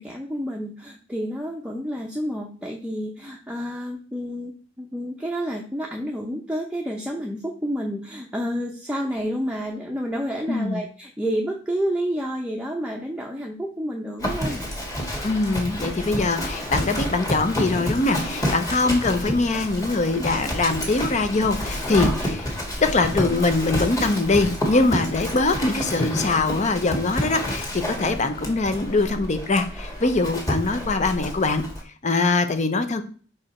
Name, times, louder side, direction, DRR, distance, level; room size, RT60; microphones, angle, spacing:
voice 1, 0.0-14.6, equal, 5° right, -1 dB, 0.6 m, -29 dB
voice 2, 10.5-10.8 15.2-22.5 22.8-31.6 32.0-33.0, left 3 dB, 40° left, 9 dB, 0.7 m, -22 dB
Livestock farm animals working animals, 14.2-31.8, equal, 20° left, 1.6 m, -29 dB
4.9 x 4.8 x 4.3 m, 0.40 s
head